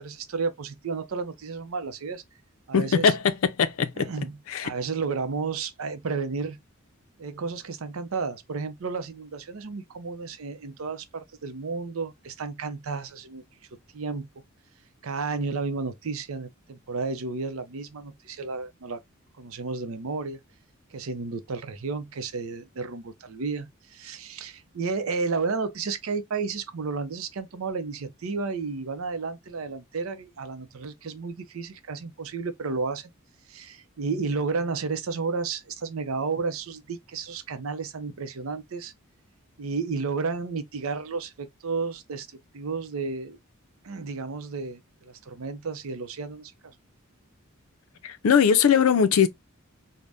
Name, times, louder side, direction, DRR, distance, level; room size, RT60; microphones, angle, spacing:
voice 1, 0.0-2.2 2.7-3.1 3.9-4.4 4.6-6.6 7.2-13.4 13.9-14.3 15.0-19.0 19.4-20.4 20.9-33.1 33.5-38.9 39.6-42.3 42.5-43.4 43.8-46.7, right 4 dB, 75° right, 0.5 m, -32 dB
voice 2, 2.7-3.3 3.6-4.1 4.5-4.7 48.0-49.3, left 7 dB, 80° left, 0.4 m, -20 dB
3.3 x 2.1 x 2.4 m
head